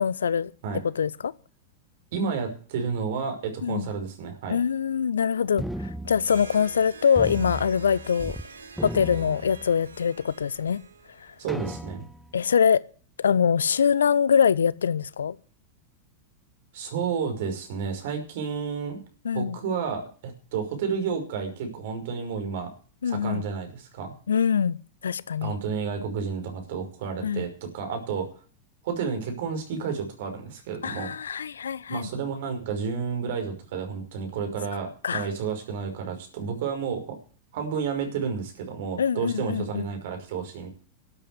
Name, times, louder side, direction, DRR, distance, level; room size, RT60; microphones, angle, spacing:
voice 1, 0.0-0.5 0.8-1.3 3.6-3.9 4.5-8.4 8.8-10.8 11.2-11.3 12.3-12.8 13.2-15.4 19.2-19.6 23.0-23.4 24.3-24.8 25.0-25.5 27.2-27.5 30.8-32.1 35.0-35.3 39.0-39.9, left 7 dB, 70° left, 0.6 m, -24 dB
voice 2, 2.1-4.6 11.4-12.1 16.7-19.0 19.3-22.7 23.1-24.1 25.4-27.5 27.7-28.3 28.8-31.1 31.9-37.2 37.5-40.7, right 6 dB, 55° right, 5.6 m, -31 dB
sound 1, 5.6-6.8 7.2-8.5 8.7-10.0 10.6-10.7 11.5-12.3, right 1 dB, ahead, 0.8 m, -36 dB
Harp, 6.1-11.9, right 4 dB, 70° right, 2.2 m, -46 dB
13.0 x 9.0 x 8.1 m
figure-of-eight pair, 90°, 0 cm